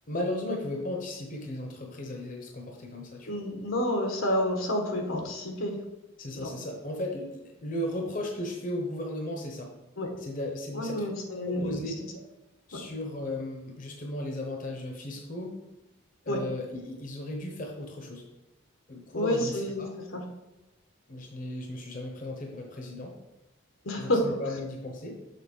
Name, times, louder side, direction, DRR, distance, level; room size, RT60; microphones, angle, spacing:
voice 1, 0.1-3.3 6.2-9.7 10.2-11.0 11.3-11.9 12.7-15.6 16.2-18.2 18.9-19.9 21.1-23.2 24.0-25.1, left 1 dB, 40° left, 1 dB, 0.9 m, -35 dB
voice 2, 3.3-5.8 6.3-6.5 10.0-10.1 10.7-11.9 12.7-12.8 16.3-16.4 19.1-20.2 23.8-24.3, left 1 dB, 80° left, 2 dB, 1.3 m, -29 dB
6.6 x 4.0 x 5.4 m, 0.99 s
head